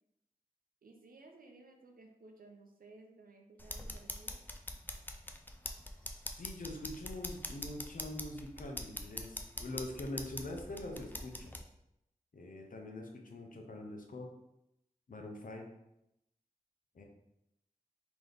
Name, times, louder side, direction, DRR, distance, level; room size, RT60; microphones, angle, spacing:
voice 1, 0.8-4.5, right 3 dB, 75° right, 3 dB, 0.6 m, -57 dB
sound 1, 3.6-11.6, left 1 dB, 15° left, 0.3 m, -44 dB
voice 2, 6.1-11.6 12.3-14.3 15.1-15.7 16.9-17.0, left 1 dB, 65° left, 2 dB, 0.7 m, -44 dB
3.4 x 3.0 x 3.9 m, 0.84 s
wide cardioid pair, 90°, 15 cm